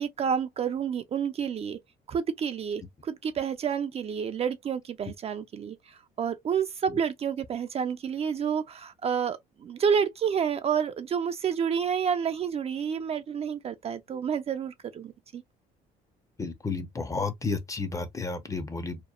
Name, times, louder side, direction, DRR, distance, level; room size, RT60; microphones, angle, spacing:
voice 1, 0.0-1.8 2.1-15.4, right 7 dB, 35° right, 0.4 m, -29 dB
voice 2, 16.4-19.0, left 4 dB, 20° left, 0.5 m, -32 dB
2.9 x 2.0 x 2.3 m
cardioid pair, 110°, 17 cm